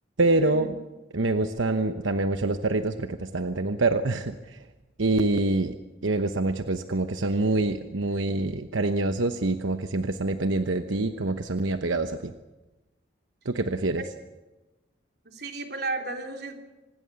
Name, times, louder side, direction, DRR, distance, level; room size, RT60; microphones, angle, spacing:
voice 1, 0.2-0.7 1.1-4.6 5.0-5.8 6.0-12.3 13.4-14.0, right 2 dB, 85° right, 8 dB, 1.0 m, -26 dB
voice 2, 15.3-16.6, right 3 dB, 55° right, 3 dB, 3.5 m, -34 dB
26.0 x 20.0 x 7.0 m, 1.1 s
head